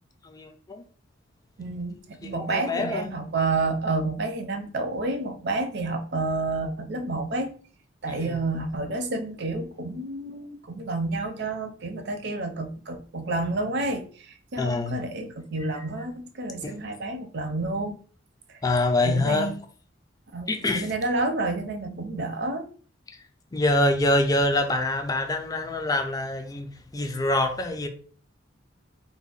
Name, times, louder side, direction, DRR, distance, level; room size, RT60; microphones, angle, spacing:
voice 1, 0.2-0.8 2.2-3.2 8.1-8.4 14.6-15.0 16.6-16.7 18.6-19.5 20.5-20.9 23.5-27.9, left 2 dB, 20° left, 0.4 m, -25 dB
voice 2, 1.6-7.5 8.0-18.0 18.5-18.6 19.0-19.6 20.3-22.7, right 2 dB, 55° right, 0.6 m, -29 dB
3.5 x 2.1 x 3.9 m
head